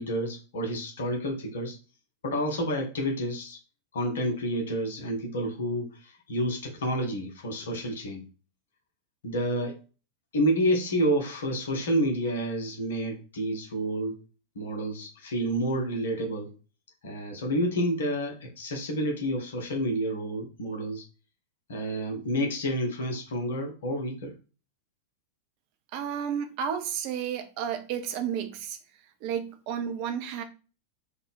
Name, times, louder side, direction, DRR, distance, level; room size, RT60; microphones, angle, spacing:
voice 1, 0.0-1.8 2.2-3.6 3.9-8.2 9.2-9.8 10.3-14.2 14.5-16.5 17.0-21.0 21.7-24.3, equal, 65° left, 2 dB, 1.1 m, -29 dB
voice 2, 25.9-28.8 29.2-30.4, right 8 dB, 45° right, 6 dB, 0.7 m, -32 dB
3.7 x 2.4 x 3.7 m, 0.35 s
figure-of-eight pair, 90°, 0 cm